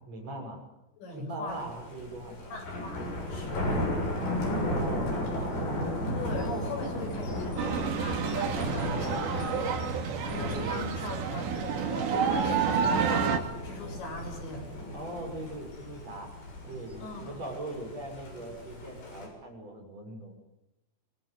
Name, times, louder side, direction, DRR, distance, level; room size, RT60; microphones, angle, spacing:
voice 1, 0.1-0.6 1.2-2.6 4.7-5.6 14.9-16.3 16.7-20.3, right 1 dB, 35° right, 2 dB, 7.3 m, -40 dB
voice 2, 1.0-1.6 2.5-3.6 6.2-14.6 17.0-17.4, left 2 dB, 85° left, 3 dB, 9.2 m, -40 dB
Thunder, 1.5-19.3, equal, 60° left, 8.9 m, -35 dB
sound 1, 7.6-13.4, right 6 dB, 75° right, 4.9 m, -29 dB
25.5 x 23.5 x 9.6 m, 0.90 s
omnidirectional pair, 5.0 m